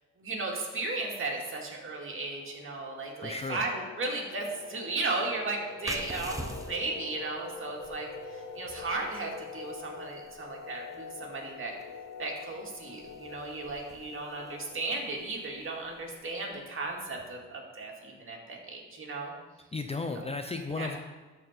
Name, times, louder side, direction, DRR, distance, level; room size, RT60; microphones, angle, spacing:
voice 1, 0.2-11.8 12.2-19.3 20.2-20.3 20.7-21.0, right 3 dB, 45° right, -1 dB, 2.2 m, -35 dB
sound 1, 1.9-16.5, left 5 dB, 80° left, 1.4 m, -46 dB
voice 2, 3.2-3.6 19.7-21.0, left 3 dB, 20° left, 6 dB, 0.6 m, -34 dB
sound 2, 5.8-17.1, right 1 dB, 10° right, 0.9 m, -47 dB
13.0 x 4.5 x 4.4 m, 1.3 s
cardioid pair, 90°, 30 cm